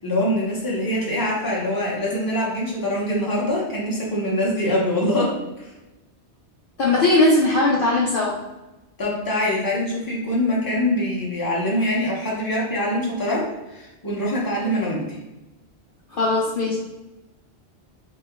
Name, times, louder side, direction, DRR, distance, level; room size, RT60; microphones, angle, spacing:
voice 1, 0.0-5.7 9.0-15.2, left 1 dB, 20° left, -5 dB, 0.9 m, -24 dB
voice 2, 6.8-8.3 16.1-16.8, left 2 dB, 55° left, -5 dB, 0.8 m, -19 dB
3.0 x 2.9 x 3.6 m, 1.0 s
omnidirectional pair, 1.2 m